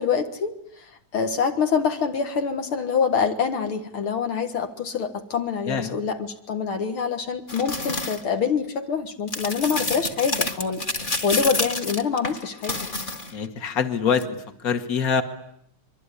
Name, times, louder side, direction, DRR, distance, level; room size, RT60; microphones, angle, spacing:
voice 1, 0.0-12.9, left 6 dB, 75° left, 6 dB, 2.5 m, -26 dB
sound 1, 7.5-8.2 9.3-13.4 14.1-14.2, left 2 dB, 25° left, 1.7 m, -29 dB
voice 2, 13.3-14.4 14.6-15.2, left 6 dB, 45° left, 7 dB, 2.3 m, -24 dB
25.5 x 23.0 x 9.9 m, 0.74 s
omnidirectional pair, 2.4 m